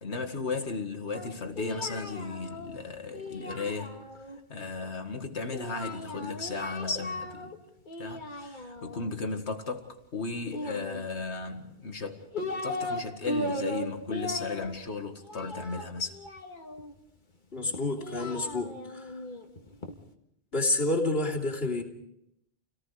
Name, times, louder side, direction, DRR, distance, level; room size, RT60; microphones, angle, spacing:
voice 1, 0.0-3.9 4.5-7.6 8.0-16.2, left 4 dB, 75° left, 2.3 m, -35 dB
Singing, 1.1-4.4 5.5-7.6 7.9-9.1 10.5-11.4 12.0-13.0 13.3-16.9 17.7-19.9, left 1 dB, 45° left, 2.0 m, -37 dB
voice 2, 17.5-19.2 20.5-21.8, left 2 dB, 60° left, 3.2 m, -29 dB
29.0 x 18.5 x 5.0 m
omnidirectional pair, 1.1 m